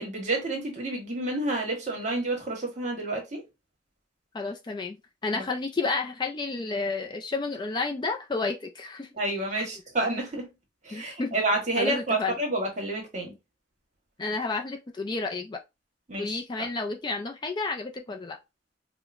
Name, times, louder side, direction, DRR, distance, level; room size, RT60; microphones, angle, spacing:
voice 1, 0.0-3.4 5.3-5.4 9.1-10.5 10.8-13.3 16.1-16.4, right 2 dB, 40° right, 1.2 m, -29 dB
voice 2, 4.3-5.0 5.2-9.1 9.5-9.7 10.9-11.3 11.8-12.4 14.2-15.6 16.2-18.4, left 3 dB, 25° left, 0.3 m, -31 dB
4.6 x 2.1 x 2.5 m
head